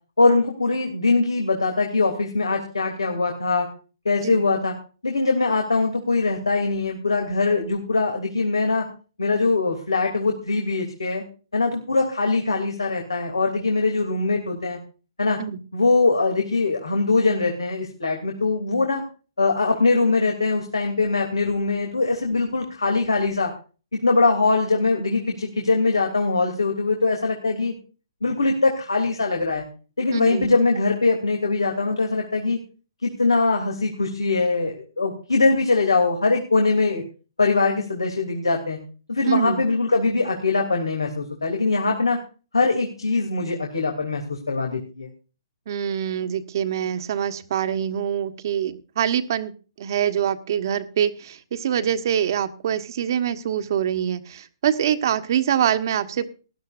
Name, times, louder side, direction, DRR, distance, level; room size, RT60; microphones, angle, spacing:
voice 1, 0.2-3.7 4.0-4.7 5.0-8.9 9.2-11.2 11.5-14.8 15.2-15.4 15.7-19.0 19.4-23.5 23.9-27.7 28.2-29.6 30.0-32.6 33.0-37.0 37.4-38.8 39.1-42.2 42.5-45.1, left 3 dB, 90° left, 3 dB, 2.9 m, -22 dB
voice 2, 30.1-30.6 39.3-39.6 45.7-49.5 49.8-56.3, right 9 dB, 55° right, 10 dB, 1.4 m, -24 dB
19.0 x 12.5 x 2.6 m, 0.36 s
hypercardioid pair, 135°, 2 cm